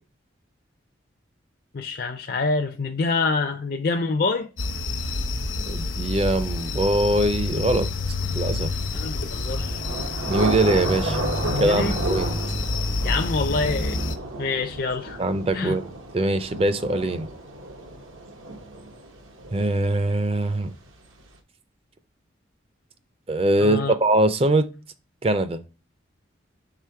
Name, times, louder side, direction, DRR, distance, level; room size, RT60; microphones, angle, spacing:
voice 1, 1.7-4.5 8.9-9.8 11.5-11.9 13.0-14.0 14.4-15.2 15.5-15.8 23.6-23.9, left 4 dB, 50° left, 0.4 m, -26 dB
sound 1, 4.6-14.1, left 2 dB, 80° left, 0.8 m, -28 dB
voice 2, 5.7-7.9 8.3-8.7 10.3-11.2 11.6-12.3 15.2-17.3 19.5-20.7 23.3-24.7 25.2-25.6, right 1 dB, 30° right, 0.4 m, -22 dB
Thunder / Rain, 8.7-20.3, right 2 dB, 90° right, 1.1 m, -33 dB
4.9 x 3.8 x 5.6 m
head